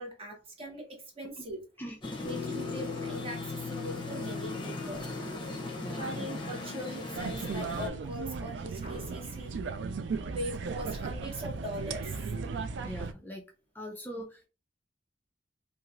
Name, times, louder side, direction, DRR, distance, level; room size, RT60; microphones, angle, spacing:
voice 1, 0.0-1.6 2.2-5.1 5.9-9.8 10.2-12.6, right 1 dB, 30° right, 1.1 m, -40 dB
voice 2, 1.8-2.3 5.8-6.3 12.8-13.4 13.7-14.5, equal, 10° left, 0.4 m, -42 dB
sound 1, 2.0-7.9, left 2 dB, 30° left, 0.8 m, -39 dB
sound 2, 2.2-7.2, left 7 dB, 85° left, 0.4 m, -41 dB
sound 3, 7.1-13.1, right 5 dB, 75° right, 0.4 m, -36 dB
2.9 x 2.4 x 2.4 m
head